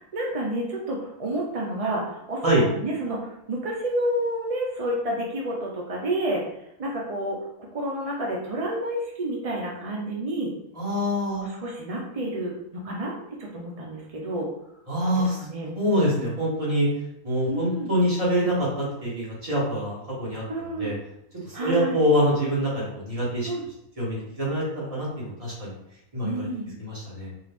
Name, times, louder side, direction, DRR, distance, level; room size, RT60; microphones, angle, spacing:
voice 1, 0.0-6.4 6.8-10.5 11.3-13.1 13.4-14.5 15.0-15.7 17.5-17.9 20.5-20.9 21.5-22.0 23.5-23.6 26.2-26.7, right 1 dB, 65° right, -1 dB, 0.3 m, -30 dB
voice 2, 10.7-11.5 14.9-15.4 15.7-16.9 17.2-20.4 20.8-20.9 21.4-23.5 24.0-25.7 26.1-26.5 26.8-27.3, equal, 25° right, -6 dB, 1.4 m, -25 dB
4.6 x 2.5 x 3.4 m, 0.81 s
omnidirectional pair, 1.5 m